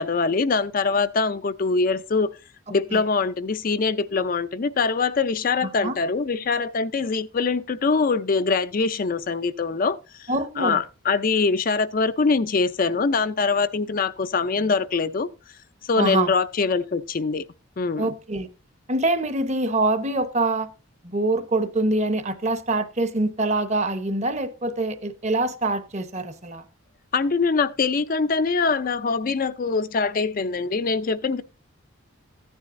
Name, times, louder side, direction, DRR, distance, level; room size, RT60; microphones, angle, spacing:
voice 1, 0.0-2.3 2.7-10.3 10.6-15.3 15.8-17.5 17.8-18.1 27.1-31.4, left 4 dB, 40° left, 0.4 m, -23 dB
voice 2, 5.6-6.0 10.3-10.8 15.9-16.3 18.0-18.5 18.9-20.7 21.0-26.6, right 2 dB, 35° right, 0.9 m, -25 dB
14.5 x 9.6 x 2.6 m
head